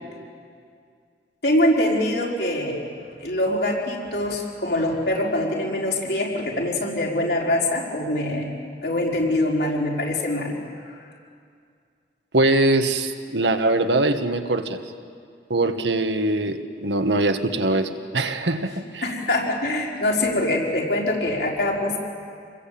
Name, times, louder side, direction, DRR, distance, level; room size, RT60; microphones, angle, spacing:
voice 1, 1.4-2.8 3.2-8.5 8.8-10.6 10.8-11.0 19.0-22.0, left 1 dB, 70° left, -3 dB, 5.2 m, -24 dB
voice 2, 12.3-14.8 15.5-19.0, right 2 dB, 85° right, 7 dB, 1.5 m, -22 dB
27.5 x 21.5 x 8.7 m, 2.2 s
head